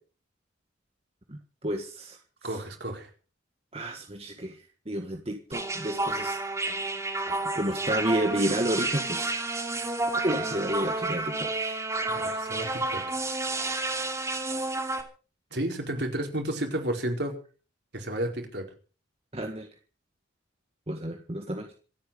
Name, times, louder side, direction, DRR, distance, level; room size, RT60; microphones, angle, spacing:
voice 1, 1.3-2.6 3.7-6.4 7.4-9.3 9.7-9.8 10.1-11.9 19.3-19.7 20.9-21.7, right 1 dB, 30° right, 4 dB, 1.7 m, -31 dB
voice 2, 2.4-3.1 12.1-13.2 15.5-17.3 17.9-18.6, right 1 dB, 60° right, 3 dB, 4.7 m, -32 dB
sound 1, 5.5-15.0, right 2 dB, 15° right, 2.8 m, -30 dB
27.0 x 9.4 x 5.0 m, 0.38 s
head